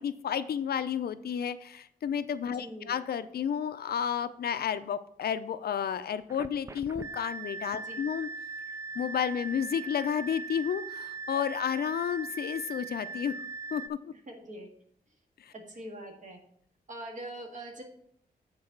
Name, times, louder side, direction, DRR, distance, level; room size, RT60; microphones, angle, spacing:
voice 1, 0.0-8.3 8.9-13.4 13.7-14.1 15.4-15.5, left 8 dB, 80° left, 12 dB, 0.5 m, -31 dB
voice 2, 2.6-2.9 7.7-8.0 14.3-14.7 15.5-16.4 16.9-17.8, right 1 dB, 50° right, 2 dB, 1.8 m, -43 dB
sound 1, 6.3-13.9, right 4 dB, 20° right, 0.3 m, -40 dB
8.5 x 4.1 x 5.9 m, 0.67 s
wide cardioid pair, 130°, 16 cm